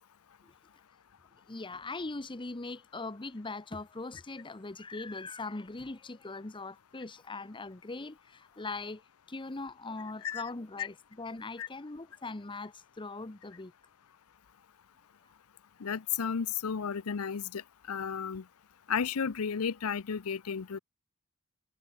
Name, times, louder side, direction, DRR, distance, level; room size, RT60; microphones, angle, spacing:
voice 1, 1.5-9.0 9.3-13.7, left 3 dB, 20° left, 0.9 m, -41 dB
voice 2, 15.8-17.6 17.9-18.4 18.9-20.8, left 7 dB, 75° left, 0.6 m, -33 dB
head